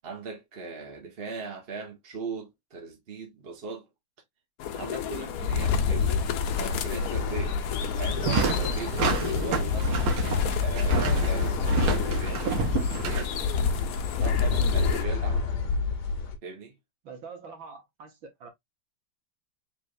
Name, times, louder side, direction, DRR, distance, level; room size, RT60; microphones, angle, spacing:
voice 1, 0.0-3.8 4.7-6.2 6.5-7.6 8.0-10.2 10.5-12.5 12.8-13.3 14.2-15.5 16.4-16.8, right 4 dB, 30° right, 1.3 m, -39 dB
sound 1, 4.6-15.0, left 8 dB, 80° left, 0.8 m, -34 dB
sound 2, 5.4-16.4, left 5 dB, 60° left, 1.4 m, -28 dB
sound 3, 8.1-13.8, right 3 dB, 90° right, 2.0 m, -29 dB
voice 2, 17.0-18.5, right 5 dB, 70° right, 1.9 m, -44 dB
4.3 x 3.5 x 2.5 m
omnidirectional pair, 2.2 m